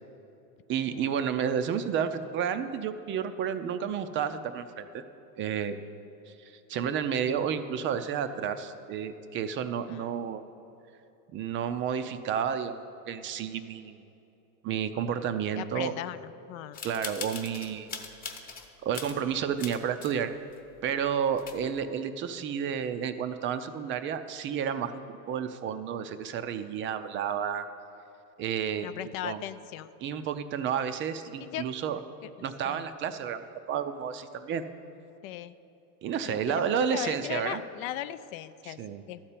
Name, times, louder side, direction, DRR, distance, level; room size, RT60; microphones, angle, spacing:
voice 1, 0.7-5.0 5.4-5.8 6.4-10.4 11.3-14.0 14.6-15.9 16.8-18.0 18.8-20.3 20.8-25.0 25.3-27.7 28.4-28.9 29.2-29.4 30.0-32.0 32.4-33.4 33.7-34.6 36.0-37.6 38.6-39.0, right 8 dB, 30° right, 10 dB, 0.4 m, -31 dB
voice 2, 15.6-16.8 28.8-29.9 31.4-31.7 32.2-32.3 32.6-32.9 35.2-35.5 36.2-38.8 39.1-39.3, left 13 dB, 65° left, 14 dB, 0.6 m, -38 dB
sound 1, 16.7-18.7 18.9-20.2 20.5-20.6 21.1-21.2 21.3-21.8, left 5 dB, 20° left, 0.9 m, -40 dB
12.5 x 4.4 x 8.3 m, 2.8 s
supercardioid pair, 125°, 43 cm